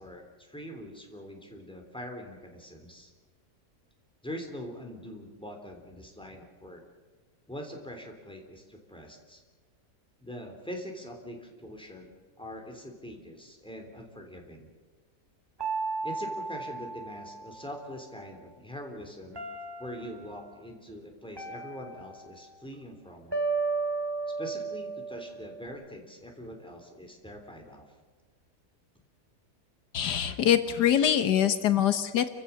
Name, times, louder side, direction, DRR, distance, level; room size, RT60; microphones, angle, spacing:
voice 1, 0.0-3.1 4.2-6.8 7.5-9.4 10.2-14.7 16.0-19.4 19.8-23.4 24.4-27.9, equal, 5° left, 2 dB, 3.4 m, -43 dB
sound 1, 15.6-17.9 19.3-20.4 21.4-22.6 23.3-25.7, right 4 dB, 15° right, 2.1 m, -34 dB
voice 2, 29.9-32.3, left 10 dB, 80° left, 10 dB, 1.7 m, -24 dB
29.0 x 16.0 x 7.1 m, 1.5 s
omnidirectional pair, 1.8 m